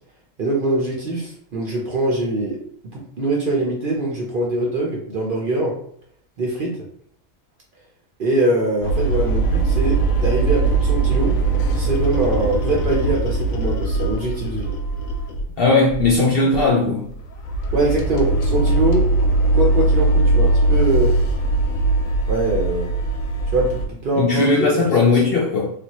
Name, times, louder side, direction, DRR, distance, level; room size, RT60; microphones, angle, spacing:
voice 1, 0.4-2.6 2.9-5.8 6.4-6.9 8.2-11.4 11.7-14.7 17.7-19.1 19.5-21.2 22.3-22.9 23.5-25.2, right 2 dB, 55° right, -2 dB, 0.7 m, -23 dB
sound 1, 8.8-15.5 15.9-16.2 16.5-16.7 17.1-23.9, right 2 dB, 80° left, 1.0 m, -20 dB
voice 2, 15.6-17.1 24.2-25.7, left 3 dB, 65° left, -3 dB, 0.6 m, -17 dB
3.3 x 2.2 x 2.9 m, 0.63 s
omnidirectional pair, 1.4 m